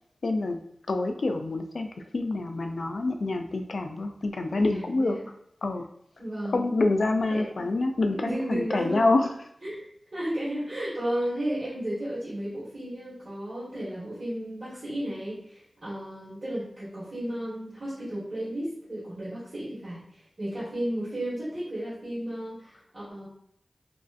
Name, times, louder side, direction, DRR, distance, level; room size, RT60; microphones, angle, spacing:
voice 1, 0.2-0.6 0.9-5.2 5.6-5.8 6.5-9.3, left 2 dB, 75° left, 5 dB, 0.3 m, -26 dB
voice 2, 4.5-5.2 6.2-6.6 7.3-7.7 8.1-9.1 9.6-9.8 10.1-23.3, right 1 dB, 55° right, -11 dB, 1.4 m, -33 dB
2.9 x 2.5 x 2.4 m, 0.70 s
wide cardioid pair, 50°, 0 cm